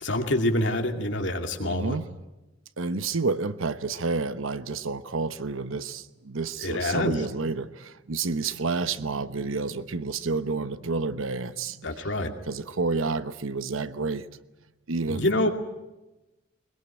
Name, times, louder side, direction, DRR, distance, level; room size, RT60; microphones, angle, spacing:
voice 1, 0.0-2.0 6.6-7.2 11.8-12.3 15.1-15.5, left 1 dB, 60° left, 2.5 m, -26 dB
voice 2, 1.6-2.1 2.8-12.0 12.5-14.3 14.9-15.5, right 4 dB, 85° right, 1.0 m, -30 dB
21.5 x 21.5 x 9.1 m
head